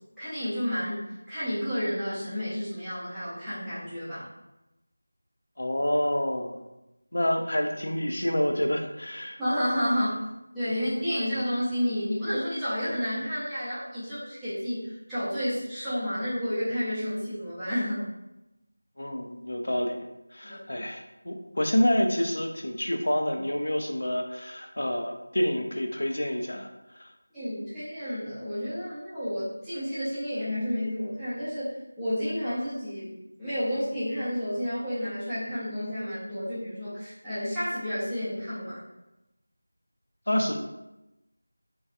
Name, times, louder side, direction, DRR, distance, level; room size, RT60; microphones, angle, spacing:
voice 1, 0.2-4.3 9.4-10.1 10.5-18.1 20.4-20.6 27.3-38.8, equal, ahead, -20 dB, 0.5 m, -31 dB
voice 2, 5.6-6.6 7.1-9.4 19.0-20.1 20.3-27.1 40.3-40.7, left 1 dB, 75° left, 3 dB, 0.4 m, -28 dB
2.6 x 2.3 x 2.4 m, 0.95 s
figure-of-eight pair, 175°, 0 cm